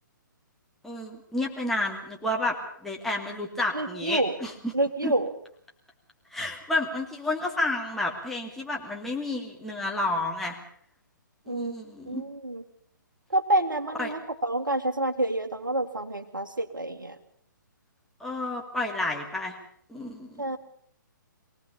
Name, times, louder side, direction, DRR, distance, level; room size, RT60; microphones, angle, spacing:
voice 1, 0.8-4.7 5.0-5.1 6.3-10.6 11.5-12.2 14.0-14.1 18.2-19.6 19.9-20.5, left 2 dB, 5° left, -1 dB, 2.7 m, -30 dB
voice 2, 3.7-4.3 4.7-5.3 11.5-11.7 12.1-12.6 13.3-17.2 20.4-20.6, right 1 dB, 75° right, 2 dB, 2.1 m, -28 dB
23.5 x 18.0 x 7.2 m, 0.63 s
figure-of-eight pair, 130°, 11 cm